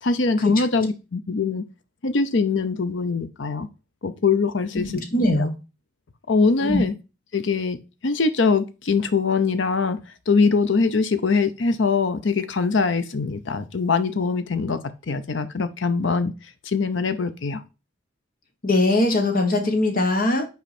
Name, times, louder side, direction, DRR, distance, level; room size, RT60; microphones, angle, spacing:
voice 1, 0.0-1.6 2.0-3.7 4.0-4.9 5.4-5.5 6.3-6.9 7.3-7.8 8.0-10.0 10.3-14.8 15.1-16.3 16.7-17.6, left 4 dB, 70° left, 11 dB, 0.7 m, -22 dB
voice 2, 4.7-5.5 6.6-6.8 18.6-20.5, left 2 dB, 45° left, 4 dB, 1.4 m, -21 dB
5.9 x 4.5 x 4.3 m, 0.30 s
head